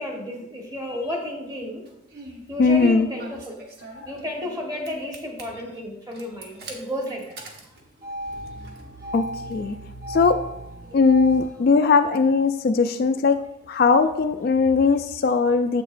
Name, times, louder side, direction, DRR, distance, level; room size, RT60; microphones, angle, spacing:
voice 1, 0.0-1.9 2.5-3.7 4.0-7.4 7.6-7.7 10.8-11.0, left 1 dB, 20° right, 0 dB, 1.2 m, -32 dB
Engine starting, 1.9-2.4 3.2-4.6 4.8-5.4 6.1-11.4, right 1 dB, 50° right, 1.0 m, -37 dB
voice 2, 2.6-3.1 4.0-4.1 9.1-9.8 10.1-10.4 10.9-13.4 13.7-15.8, left 4 dB, 50° left, 8 dB, 0.3 m, -19 dB
7.5 x 6.4 x 2.5 m, 0.84 s
head